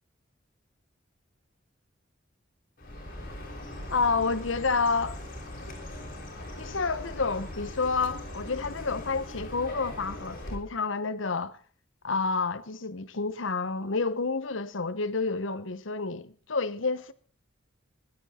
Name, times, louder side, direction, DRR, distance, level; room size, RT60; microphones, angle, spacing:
Chirp tweet, 2.8-10.6, left 1 dB, 45° left, 5.4 m, -40 dB
voice 1, 3.9-5.2 6.6-11.6 12.0-17.1, left 4 dB, 70° left, 0.9 m, -29 dB
21.0 x 11.5 x 4.3 m
head